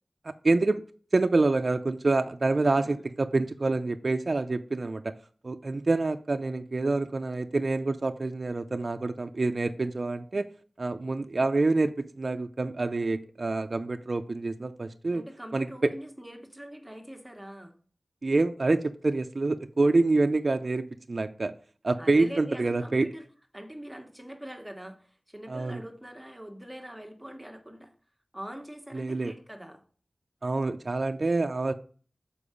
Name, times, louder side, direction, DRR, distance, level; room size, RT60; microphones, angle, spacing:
voice 1, 0.2-0.8 1.1-5.1 5.4-10.5 10.8-15.2 15.5-15.9 18.2-21.5 21.8-23.1 25.5-25.8 28.9-29.3 30.4-31.7, right 3 dB, 60° right, 0.4 m, -27 dB
voice 2, 2.6-3.0 15.1-17.7 22.0-23.3 23.5-27.9 28.3-29.8, equal, 10° right, 1.2 m, -43 dB
6.9 x 4.6 x 5.0 m
wide cardioid pair, 70°, 0 cm